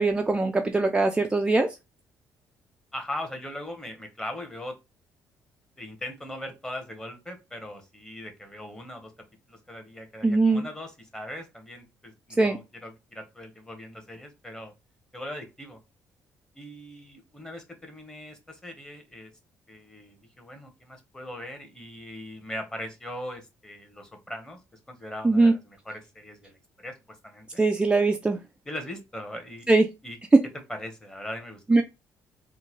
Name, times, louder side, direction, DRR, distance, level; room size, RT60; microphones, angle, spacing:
voice 1, 0.0-1.8 10.2-10.7 12.4-12.6 25.2-25.5 27.6-28.4 29.7-29.8 31.7-31.8, right 3 dB, 15° right, 0.4 m, -21 dB
voice 2, 2.9-4.8 5.8-9.1 9.5-14.7 15.1-15.8 16.5-19.3 19.7-24.6 24.9-27.0 27.2-27.6 28.7-29.7 30.0-30.2 30.7-31.8, left 1 dB, 10° left, 1.1 m, -40 dB
3.8 x 2.2 x 3.0 m
cardioid pair, 95°, 7 cm